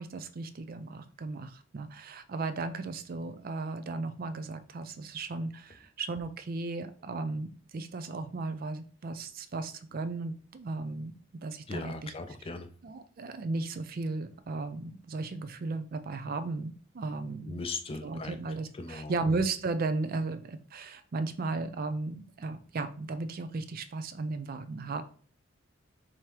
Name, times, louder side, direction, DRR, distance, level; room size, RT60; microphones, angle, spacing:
voice 1, 0.0-11.1 11.4-12.1 12.8-17.6 18.0-25.0, right 3 dB, 45° right, 10 dB, 0.4 m, -35 dB
voice 2, 11.7-12.7 17.5-18.4 18.8-19.1, left 3 dB, 30° left, 8 dB, 0.4 m, -38 dB
4.9 x 2.9 x 3.1 m, 0.43 s
head